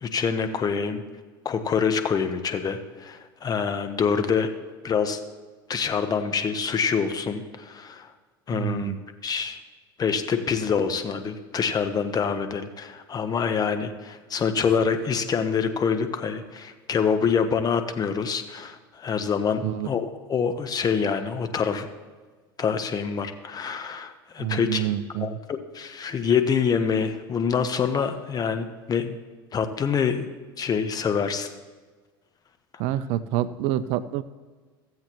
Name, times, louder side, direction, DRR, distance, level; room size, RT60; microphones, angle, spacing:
voice 1, 0.0-1.0 1.4-4.5 4.8-5.2 5.7-8.1 8.5-8.9 9.2-9.6 10.0-21.9 22.6-24.9 25.2-29.2 29.5-30.3 30.6-31.5, left 6 dB, 30° left, 8 dB, 0.9 m, -26 dB
voice 2, 8.5-9.0 19.6-19.9 24.4-25.4 32.8-34.2, right 12 dB, 60° right, 15 dB, 0.4 m, -27 dB
15.0 x 7.7 x 3.0 m, 1.4 s
hypercardioid pair, 80°, 12 cm